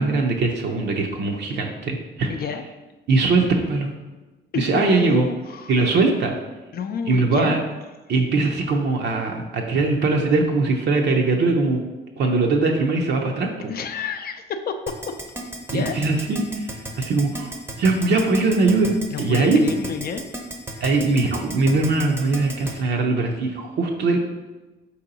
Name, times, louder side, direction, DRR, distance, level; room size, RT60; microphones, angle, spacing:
voice 1, 0.0-2.3 3.1-3.9 4.5-5.3 5.7-6.3 7.1-7.6 8.1-11.8 12.2-13.7 15.7-19.6 20.8-24.2, right 3 dB, 60° right, 1 dB, 0.5 m, -21 dB
voice 2, 2.3-2.6 4.5-5.7 6.7-7.6 13.7-15.2 15.7-16.0 19.1-20.2 22.7-22.8, left 5 dB, 50° left, 8 dB, 0.4 m, -29 dB
Keyboard (musical), 14.9-22.7, right 2 dB, 10° right, 0.6 m, -33 dB
4.6 x 2.8 x 3.9 m, 1.2 s
cardioid pair, 90°, 20 cm